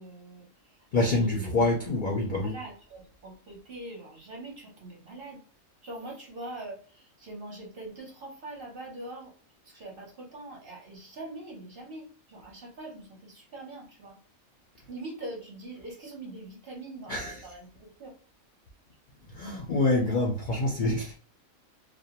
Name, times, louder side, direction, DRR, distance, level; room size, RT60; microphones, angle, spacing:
voice 1, 0.0-1.5 2.4-5.4 5.8-9.3 9.6-14.2 14.9-18.1, right 2 dB, 50° right, 0.9 m, -43 dB
voice 2, 0.9-2.6 17.1-17.3 19.3-21.2, left 2 dB, 60° left, 0.5 m, -26 dB
2.5 x 2.1 x 2.8 m
omnidirectional pair, 1.4 m